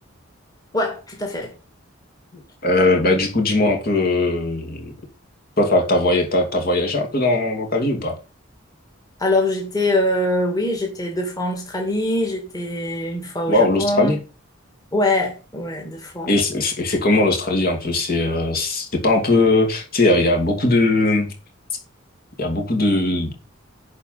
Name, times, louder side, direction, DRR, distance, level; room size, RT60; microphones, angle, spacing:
voice 1, 0.7-1.5 9.2-14.2 14.9-16.3, left 1 dB, 20° left, 2.5 m, -23 dB
voice 2, 2.6-4.9 5.6-8.2 13.5-14.2 16.3-21.3 22.4-23.3, left 2 dB, 50° left, 2.7 m, -19 dB
10.5 x 4.8 x 5.8 m
head